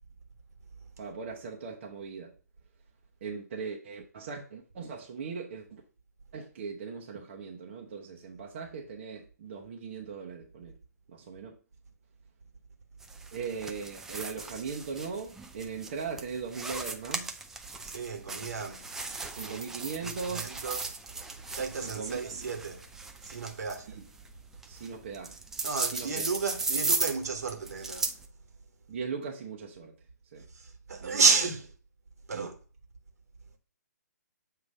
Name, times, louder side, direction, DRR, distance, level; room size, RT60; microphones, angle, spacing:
voice 1, 1.0-2.3 3.2-5.8 6.3-10.8 11.1-11.6 13.3-17.3 19.4-20.5 21.8-22.5 24.0-24.1 24.7-25.4 25.9-26.2 28.9-29.9 30.3-30.5 31.0-31.2 32.3-32.5, right 5 dB, 40° right, 1.0 m, -39 dB
sound 1, 13.0-28.3, right 3 dB, 5° right, 0.4 m, -37 dB
voice 2, 17.8-18.9 19.4-19.6 20.0-20.9 21.5-22.8 23.2-24.0 25.6-28.1 30.5-31.7 32.3-32.5, right 4 dB, 60° right, 1.4 m, -31 dB
7.4 x 2.9 x 5.2 m
figure-of-eight pair, 135°, 9 cm